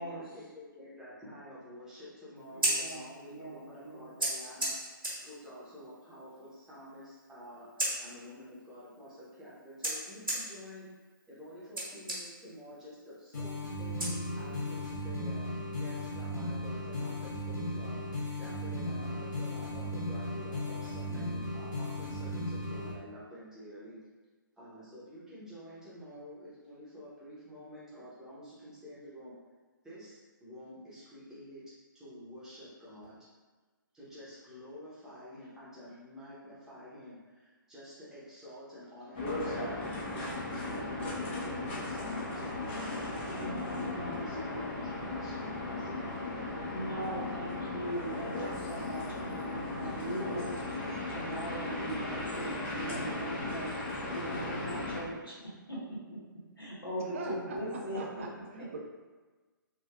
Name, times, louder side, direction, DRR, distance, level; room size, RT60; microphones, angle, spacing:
voice 1, 0.0-4.8 5.2-10.9 11.3-15.5 15.7-24.0 24.6-29.4 29.8-31.6 31.9-33.2 33.9-46.5, equal, 5° right, -11 dB, 0.8 m, -49 dB
Scissors, 2.4-14.7, right 1 dB, 75° right, 1.2 m, -39 dB
voice 2, 2.5-4.1 43.3-44.3 46.7-50.5 51.1-53.7 54.1-56.2 56.6-58.0, right 1 dB, 90° left, -6 dB, 1.1 m, -40 dB
sound 1, 13.3-22.9, left 1 dB, 55° left, 1.2 m, -36 dB
sound 2, 39.1-55.0, left 2 dB, 30° left, 0.6 m, -36 dB
voice 3, 57.1-58.8, right 3 dB, 35° right, 0 dB, 0.4 m, -42 dB
3.3 x 2.4 x 2.3 m, 1.3 s
figure-of-eight pair, 130°, 12 cm